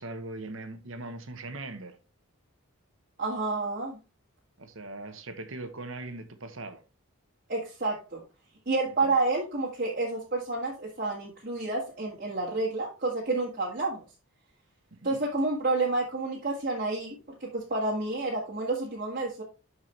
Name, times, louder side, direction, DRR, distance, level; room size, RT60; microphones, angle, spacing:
voice 1, 0.0-2.0 4.6-6.8 9.0-9.1 15.0-15.2, right 2 dB, 65° right, 1.2 m, -40 dB
voice 2, 3.2-4.0 7.5-8.2 8.6-14.0 15.0-19.4, right 3 dB, 45° right, 1.7 m, -29 dB
12.0 x 4.7 x 3.3 m
head